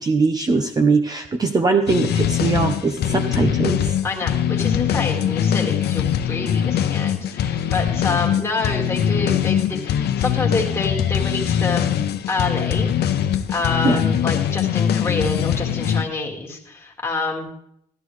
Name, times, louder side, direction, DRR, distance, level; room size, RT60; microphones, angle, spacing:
voice 1, 0.0-3.9 13.8-14.0, right 4 dB, 20° right, 5 dB, 0.6 m, -21 dB
sound 1, 1.9-16.0, left 9 dB, 70° left, 0.7 m, -22 dB
voice 2, 4.0-12.0 12.3-12.9 13.5-17.5, left 3 dB, 15° left, -1 dB, 1.9 m, -27 dB
13.5 x 12.5 x 3.2 m, 0.70 s
cardioid pair, 170°, 17 cm